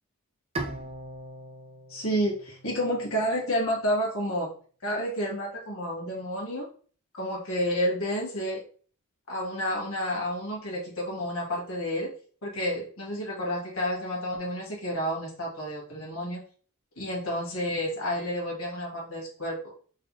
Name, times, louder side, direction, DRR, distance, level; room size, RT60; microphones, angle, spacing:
Bowed string instrument, 0.5-3.8, right 2 dB, 30° right, 0.4 m, -40 dB
voice 1, 1.9-4.5 4.8-6.7 7.1-8.6 9.3-12.1 12.4-16.4 17.0-19.6, equal, 65° left, -4 dB, 1.5 m, -30 dB
4.0 x 2.2 x 3.1 m, 0.42 s
head